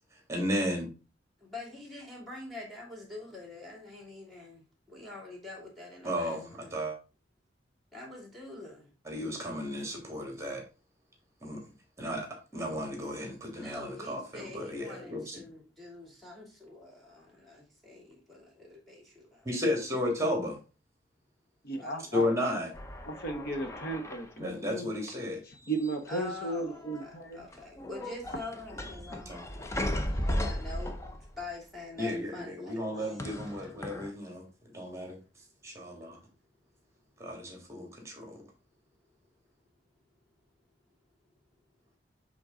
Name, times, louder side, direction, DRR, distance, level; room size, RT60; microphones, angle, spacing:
voice 1, 0.3-0.9 6.0-7.0 9.0-10.6 11.4-11.6 12.0-15.4 19.4-20.6 22.1-22.7 24.4-25.4 29.1-29.4 32.0-34.4 34.7-35.2 35.6-36.2 37.2-38.4, left 1 dB, 15° right, 2 dB, 1.8 m, -33 dB
voice 2, 1.4-6.6 7.9-8.9 13.5-19.5 21.8-22.0 26.1-29.6 30.0-33.3 33.6-33.7, left 2 dB, ahead, -1 dB, 2.6 m, -45 dB
voice 3, 21.6-22.3 23.1-24.9 25.4-27.5, right 2 dB, 55° left, 5 dB, 1.0 m, -35 dB
sound 1, 22.7-24.5 25.7-26.3 26.5-27.1 27.5-31.5 33.2-34.1, left 1 dB, 15° left, 0.6 m, -36 dB
7.8 x 3.8 x 3.7 m, 0.32 s
head